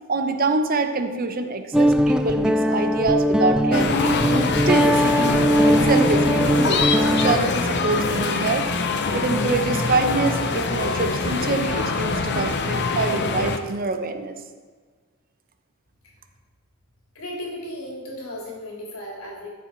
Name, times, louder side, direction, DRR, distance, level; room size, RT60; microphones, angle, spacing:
voice 1, 0.1-4.2 4.7-6.9 7.1-8.7 9.1-14.3, right 3 dB, 45° right, 8 dB, 0.8 m, -25 dB
Guitar, 1.7-7.4, equal, 5° right, 0.3 m, -20 dB
sound 1, 3.7-13.6, left 4 dB, 55° left, 0.8 m, -24 dB
voice 2, 17.1-19.5, left 1 dB, 80° left, -2 dB, 3.3 m, -35 dB
13.5 x 7.5 x 4.5 m, 1.5 s
head